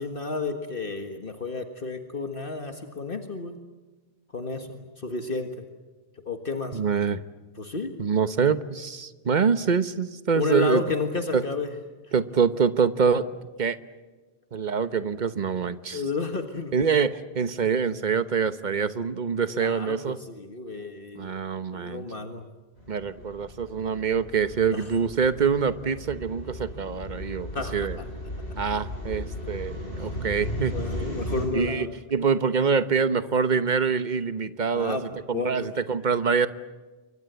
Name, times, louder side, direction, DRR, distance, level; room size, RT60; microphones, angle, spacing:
voice 1, 0.0-3.6 4.3-5.7 6.3-6.8 7.6-7.9 10.4-11.7 15.9-16.7 19.5-21.4 21.7-22.4 23.2-23.3 24.7-24.9 27.5-28.1 28.5-28.6 30.0-30.1 30.7-31.9 34.7-35.7, left 3 dB, 60° left, 6 dB, 1.8 m, -31 dB
voice 2, 6.7-7.2 8.0-10.8 11.3-11.4 12.1-13.3 13.6-13.8 14.5-16.0 16.7-20.2 21.2-22.4 22.9-28.0 28.6-30.7 31.5-35.0 35.3-36.5, right 6 dB, 50° right, 12 dB, 1.2 m, -25 dB
sound 1, 22.8-31.5, left 1 dB, 90° left, 8.1 m, -36 dB
29.5 x 24.0 x 8.1 m, 1.3 s
omnidirectional pair, 1.1 m